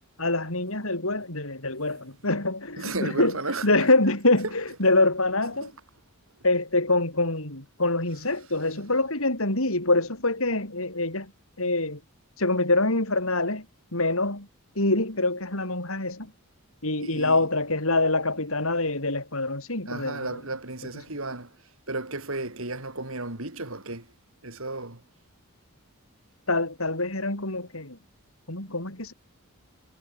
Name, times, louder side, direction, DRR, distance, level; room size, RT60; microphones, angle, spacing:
voice 1, 0.2-3.4 3.6-5.7 6.4-11.3 11.6-12.0 12.4-13.7 13.9-14.5 14.8-16.3 16.8-20.4 26.5-28.0 28.5-29.1, left 2 dB, 65° left, 6.2 m, -25 dB
voice 2, 2.8-3.7 5.6-5.7 17.0-17.4 19.9-21.5 21.9-24.0 24.4-25.0, right 2 dB, 65° right, 5.1 m, -33 dB
head